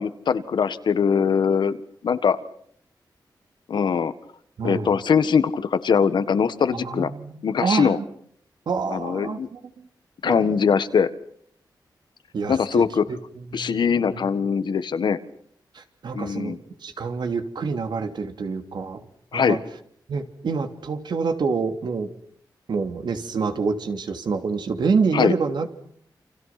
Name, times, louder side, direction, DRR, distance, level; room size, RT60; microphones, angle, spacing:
voice 1, 0.0-1.8 2.0-2.4 3.7-4.1 4.6-7.1 7.4-8.0 8.9-9.5 10.2-11.1 12.5-13.1 13.5-15.2 16.2-16.6 19.3-19.6 25.1-25.4, left 6 dB, 75° left, 12 dB, 1.7 m, -21 dB
voice 2, 4.6-4.9 6.7-8.0 8.7-9.6 10.3-10.5 12.3-13.9 14.1-14.3 15.7-19.0 19.3-19.6 20.1-22.1 22.7-25.7, right 5 dB, 70° right, 7 dB, 3.0 m, -27 dB
29.0 x 28.5 x 6.0 m, 0.64 s
wide cardioid pair, 145°, 8 cm